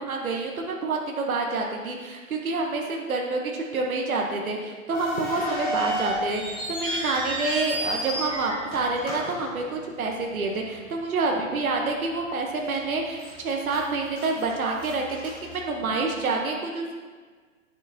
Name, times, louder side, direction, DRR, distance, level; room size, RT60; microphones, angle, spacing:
voice 1, 0.0-16.9, right 3 dB, 85° right, 0 dB, 1.2 m, -28 dB
sound 1, 4.9-10.2 10.5-10.6 11.3-11.6 12.0-12.1 12.7-13.3 13.7-16.1, equal, 10° left, 0.3 m, -33 dB
8.9 x 6.7 x 2.9 m, 1.5 s
hypercardioid pair, 135°, 41 cm